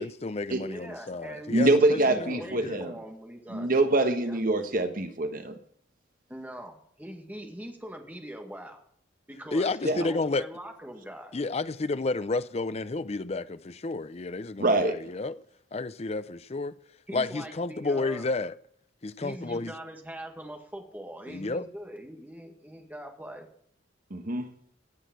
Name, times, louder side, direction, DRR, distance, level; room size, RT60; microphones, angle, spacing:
voice 1, 0.0-2.8 9.5-10.5 11.3-15.4 15.7-16.8 17.1-18.6 19.0-19.7 21.3-21.6, left 3 dB, 35° left, 0.6 m, -31 dB
voice 2, 0.7-3.7 4.2-4.4 6.3-8.8 9.3-11.3 17.1-18.3 19.2-23.5, right 1 dB, 10° right, 1.9 m, -42 dB
voice 3, 1.5-2.9 3.5-5.5 9.8-10.1 14.6-14.9 24.1-24.5, right 2 dB, 45° right, 1.3 m, -24 dB
17.0 x 6.4 x 7.7 m
head